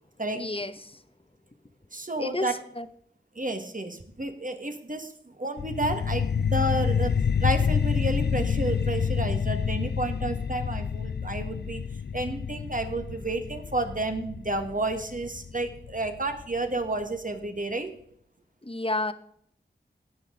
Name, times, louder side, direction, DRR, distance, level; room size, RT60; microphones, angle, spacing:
voice 1, 0.3-1.0 2.2-2.9 18.6-19.1, left 2 dB, 30° left, 11 dB, 0.9 m, -31 dB
voice 2, 1.9-2.5 3.3-7.1 7.4-11.8 12.1-17.9, right 2 dB, 45° right, 6 dB, 1.7 m, -31 dB
sound 1, 5.6-16.6, left 6 dB, 60° left, 0.4 m, -28 dB
17.0 x 6.3 x 3.9 m, 0.65 s
wide cardioid pair, 45°, 19 cm